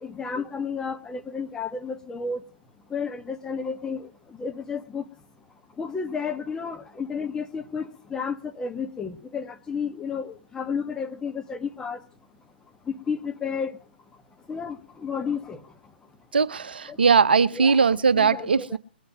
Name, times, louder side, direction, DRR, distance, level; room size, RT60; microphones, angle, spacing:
voice 1, 0.0-2.4 2.9-4.1 4.4-5.0 5.8-12.0 13.1-13.8 14.5-15.6 16.9-17.0 17.5-18.8, left 5 dB, 10° left, 1.0 m, -32 dB
voice 2, 16.3-18.8, right 5 dB, 65° right, 0.8 m, -20 dB
21.5 x 7.9 x 7.8 m
figure-of-eight pair, 120°, 6 cm